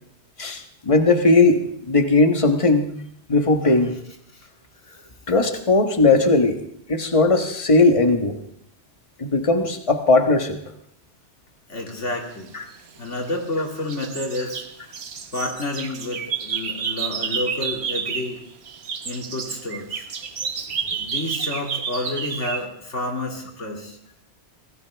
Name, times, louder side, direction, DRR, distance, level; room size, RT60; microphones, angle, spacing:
voice 1, 0.4-2.9 3.3-3.9 5.3-6.6 6.9-8.4 9.2-10.6 12.5-12.6, left 3 dB, 30° left, 5 dB, 1.4 m, -18 dB
voice 2, 11.7-12.5 13.0-14.6 15.3-18.4 19.0-20.1 20.6-20.7 21.0-24.0, left 2 dB, 85° left, 1 dB, 2.9 m, -29 dB
sound 1, 12.7-13.6 13.9-18.4 18.6-22.7, right 6 dB, 65° right, 1.3 m, -30 dB
24.0 x 17.0 x 3.5 m, 0.70 s
omnidirectional pair, 1.2 m